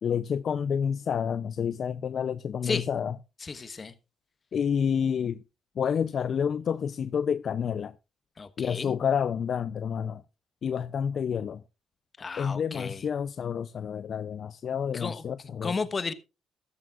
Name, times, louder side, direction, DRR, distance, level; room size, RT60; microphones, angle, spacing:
voice 1, 0.0-3.2 4.5-5.4 5.8-7.9 8.6-10.2 10.6-11.6 12.4-15.8, left 7 dB, 55° left, 0.5 m, -29 dB
voice 2, 3.4-3.9 8.4-8.9 12.2-13.0 14.9-15.2 15.6-16.1, left 4 dB, 35° left, 1.2 m, -33 dB
14.0 x 13.5 x 2.4 m
cardioid pair, 90°, 0 cm